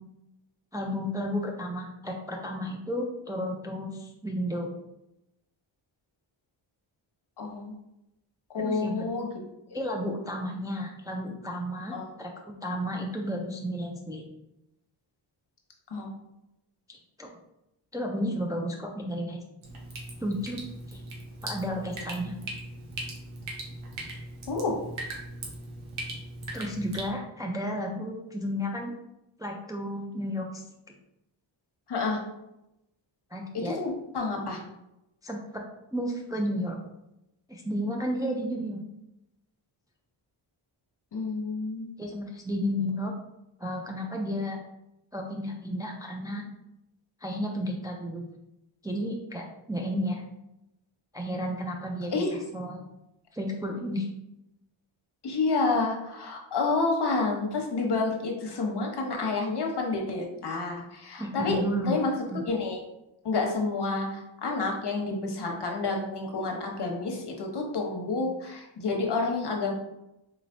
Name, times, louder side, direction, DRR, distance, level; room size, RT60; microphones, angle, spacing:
voice 1, 0.7-4.7 8.6-9.1 9.7-14.3 16.9-17.3 17.9-19.4 20.2-20.6 20.9-21.0 21.4-22.3 26.5-28.9 29.4-30.6 33.3-33.8 35.2-35.6 35.9-36.8 37.5-38.8 42.0-43.1 43.6-44.6 45.1-46.4 47.2-48.2 48.8-50.2 51.1-52.8 53.3-54.1 61.2-62.0 62.3-62.4, equal, 10° right, 0 dB, 0.4 m, -32 dB
voice 2, 7.4-7.8 8.5-9.3 11.9-12.1 15.9-16.1 24.5-24.8 31.9-32.2 33.5-34.6 41.1-41.9 52.1-52.4 55.2-61.6 61.8-62.8 63.2-69.7, left 3 dB, 55° left, 1 dB, 1.0 m, -29 dB
Drip, 19.6-27.1, right 2 dB, 85° right, 1.0 m, -39 dB
4.0 x 3.1 x 2.6 m, 0.88 s
cardioid pair, 80°, 47 cm